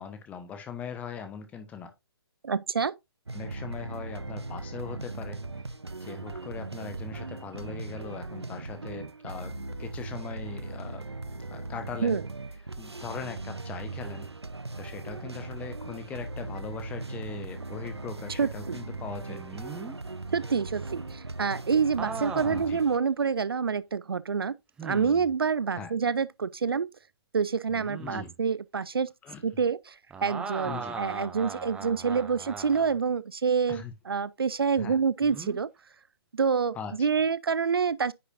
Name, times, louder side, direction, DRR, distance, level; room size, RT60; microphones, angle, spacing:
voice 1, 0.0-1.9 3.3-5.4 6.0-9.5 9.8-11.1 11.5-12.2 12.8-14.3 14.8-19.4 22.4-22.8 25.7-25.9 28.0-28.3 29.2-29.4 30.6-31.0 33.7-33.9 34.8-35.0 36.7-36.9, left 6 dB, 10° left, 1.1 m, -40 dB
voice 2, 2.4-2.9 12.0-12.2 18.4-18.8 20.3-24.5 24.8-26.9 27.3-29.1 29.4-30.0 30.2-35.7 36.3-38.1, right 6 dB, 65° right, 0.5 m, -27 dB
sound 1, 3.3-23.0, right 3 dB, 80° right, 0.9 m, -38 dB
sound 2, 19.3-20.0 22.0-22.8 23.4-23.5 24.8-25.3 27.7-28.3 30.1-33.0 35.2-35.6, right 5 dB, 5° right, 0.7 m, -39 dB
9.6 x 6.7 x 2.6 m
figure-of-eight pair, 135°, 13 cm